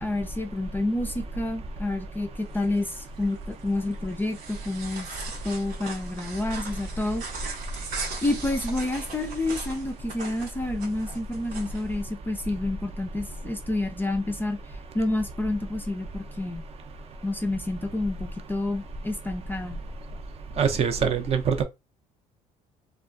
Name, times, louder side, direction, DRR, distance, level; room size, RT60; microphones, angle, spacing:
voice 1, 0.0-5.1 5.4-7.6 8.2-14.6 14.9-16.6 17.2-19.8, left 2 dB, 15° left, 0.4 m, -29 dB
sound 1, 2.4-11.9, right 4 dB, 85° right, 1.0 m, -40 dB
voice 2, 20.6-21.6, right 7 dB, 45° right, 0.5 m, -23 dB
2.2 x 2.2 x 2.5 m
cardioid pair, 95°, 15 cm